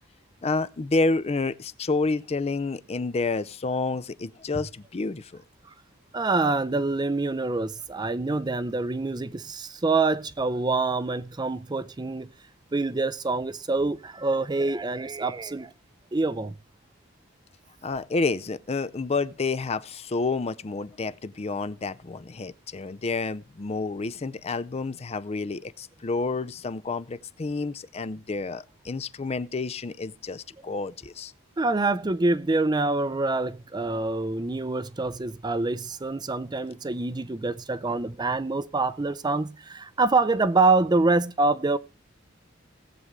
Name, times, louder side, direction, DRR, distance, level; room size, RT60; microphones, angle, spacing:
voice 1, 0.4-5.4 17.8-31.3, left 3 dB, 30° left, 0.5 m, -29 dB
voice 2, 6.1-12.3 12.7-15.7 16.1-16.5 31.6-41.8, right 3 dB, 20° right, 0.5 m, -26 dB
18.0 x 7.9 x 3.6 m
head